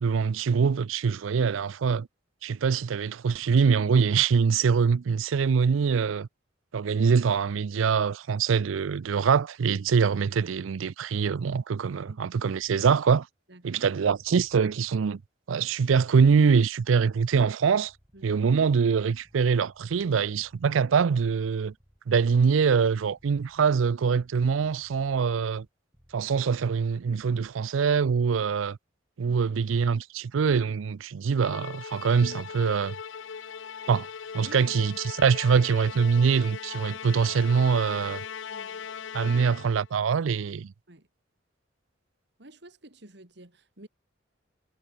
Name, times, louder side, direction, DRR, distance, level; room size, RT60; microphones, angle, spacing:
voice 1, 0.0-2.1 2.4-6.3 6.7-13.3 13.6-15.2 15.5-17.9 18.2-21.7 22.1-25.7 26.1-28.8 29.2-32.9 33.9-34.1 34.3-38.2 39.1-40.7, right 6 dB, 90° right, 0.4 m, -24 dB
voice 2, 13.5-13.9 18.1-18.4 29.2-29.6 34.4-34.8 38.5-38.9 39.2-39.9 40.9-41.1 42.4-43.9, right 1 dB, 60° right, 2.8 m, -50 dB
sound 1, 14.2-14.7 16.0-16.5 17.8-27.6, equal, 15° right, 5.8 m, -62 dB
Musical instrument, 31.4-39.9, left 7 dB, 70° left, 0.6 m, -39 dB
head